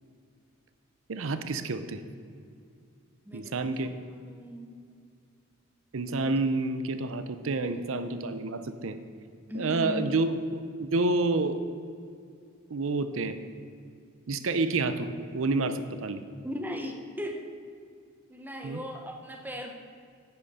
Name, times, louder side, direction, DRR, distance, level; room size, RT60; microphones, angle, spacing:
voice 1, 1.1-2.0 3.3-3.9 5.9-9.0 9.5-11.6 12.7-13.4 14.3-16.2 18.6-18.8, right 3 dB, 75° right, 10 dB, 0.6 m, -29 dB
voice 2, 3.2-4.7 9.5-10.1 16.4-17.5 18.3-19.7, left 1 dB, 10° right, 3 dB, 0.8 m, -38 dB
10.0 x 8.8 x 4.2 m, 2.3 s
head